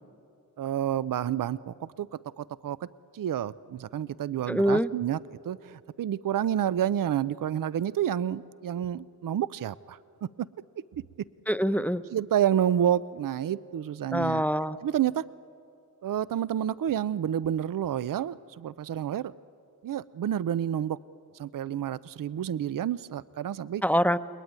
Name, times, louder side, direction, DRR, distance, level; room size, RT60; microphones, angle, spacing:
voice 1, 0.6-2.9 3.1-10.5 12.1-14.4 14.8-15.2 16.0-19.3 19.8-21.0 21.3-23.8, right 10 dB, 65° right, 17 dB, 0.6 m, -29 dB
voice 2, 4.5-4.9 11.5-12.0 14.1-14.8 23.8-24.2, equal, 5° left, 11 dB, 0.8 m, -24 dB
30.0 x 20.5 x 9.5 m, 2.6 s
cardioid pair, 70°, 35 cm